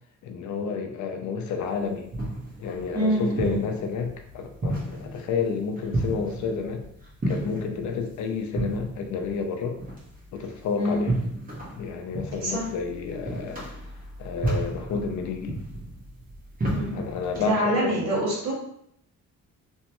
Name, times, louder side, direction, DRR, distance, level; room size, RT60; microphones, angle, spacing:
voice 1, 0.2-2.1 2.6-6.9 7.3-9.8 10.3-11.2 11.7-13.7 14.2-15.6 16.9-18.2, left 5 dB, 75° left, 4 dB, 0.6 m, -30 dB
sound 1, 1.6-17.5, right 1 dB, 30° right, 1.1 m, -33 dB
voice 2, 2.9-3.6 10.7-11.0 12.4-12.6 16.6-17.0 17.4-18.5, right 1 dB, 60° right, -5 dB, 1.4 m, -25 dB
3.0 x 2.2 x 2.9 m, 0.72 s
cardioid pair, 90°, 30 cm